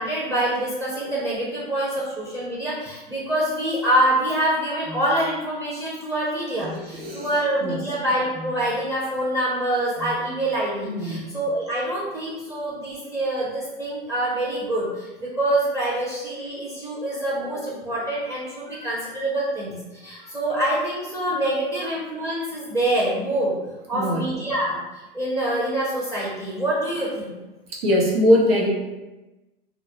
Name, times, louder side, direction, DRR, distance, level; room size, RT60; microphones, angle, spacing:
voice 1, 0.0-23.5 23.9-27.4, right 1 dB, 10° right, -7 dB, 0.5 m, -25 dB
sound 1, 4.8-5.1 6.6-6.9 8.3-8.6 10.0-10.3, left 2 dB, 35° right, 0.8 m, -38 dB
voice 2, 6.7-7.8 10.8-11.3 18.7-18.9 23.9-24.3 27.7-28.7, left 1 dB, 75° right, -3 dB, 0.8 m, -22 dB
2.3 x 2.0 x 2.7 m, 1.1 s
hypercardioid pair, 105°, 29 cm